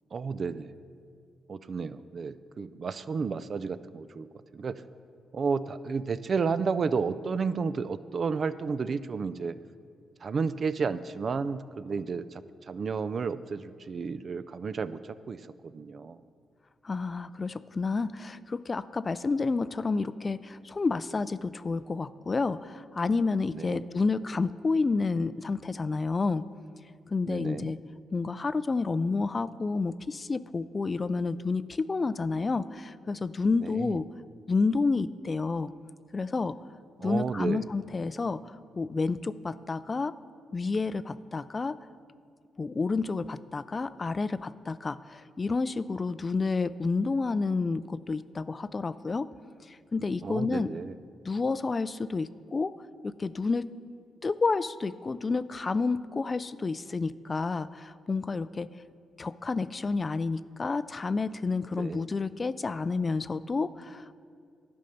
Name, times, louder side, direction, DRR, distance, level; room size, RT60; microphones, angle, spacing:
voice 1, 0.1-0.7 1.5-4.3 4.5-4.8 5.3-9.5 10.2-12.4 12.7-16.2 23.5-23.8 27.3-27.7 33.6-34.0 37.0-37.6 50.2-51.0 61.7-62.1, right 5 dB, 50° right, 15 dB, 0.3 m, -32 dB
voice 2, 16.8-26.4 27.1-27.8 28.1-34.1 34.5-35.7 36.1-36.6 37.0-40.2 40.5-41.8 42.6-49.3 49.7-50.7 51.2-52.7 53.0-53.7 54.2-58.7 59.2-64.1, left 4 dB, 35° left, 16 dB, 0.3 m, -30 dB
11.5 x 5.2 x 5.7 m, 2.2 s
cardioid pair, 70°, 0 cm